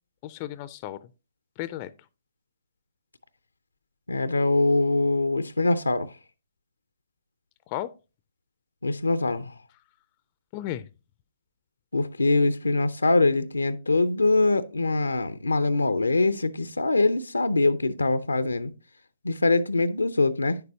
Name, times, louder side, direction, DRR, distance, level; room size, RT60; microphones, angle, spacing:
voice 1, 0.2-1.1 1.6-2.1 7.7-8.0 10.5-10.9, left 13 dB, 35° left, 0.4 m, -34 dB
voice 2, 4.1-6.1 8.8-9.5 11.9-18.7 19.2-20.6, left 2 dB, 90° left, 0.5 m, -23 dB
9.4 x 6.7 x 2.7 m
figure-of-eight pair, 130°, 0 cm